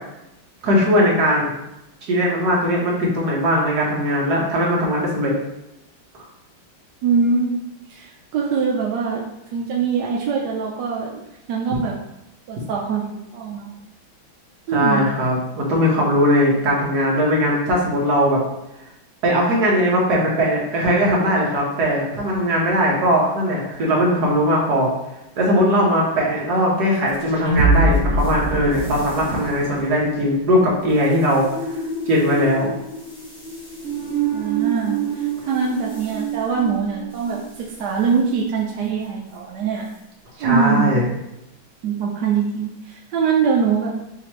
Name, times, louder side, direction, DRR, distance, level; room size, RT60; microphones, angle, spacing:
voice 1, 0.6-1.5 2.1-5.3 14.7-18.4 19.2-24.9 25.4-31.5 32.1-32.7 40.4-41.0, equal, 55° right, -4 dB, 1.6 m, -19 dB
voice 2, 7.0-7.6 7.9-9.2 9.5-11.2 11.5-11.9 12.5-13.7 14.7-15.1 34.3-39.8 40.4-40.9 41.8-43.9, right 5 dB, 70° right, -2 dB, 1.0 m, -23 dB
sound 1, 27.1-37.6, right 3 dB, 5° right, 1.4 m, -25 dB
5.7 x 3.0 x 3.0 m, 0.88 s
omnidirectional pair, 2.2 m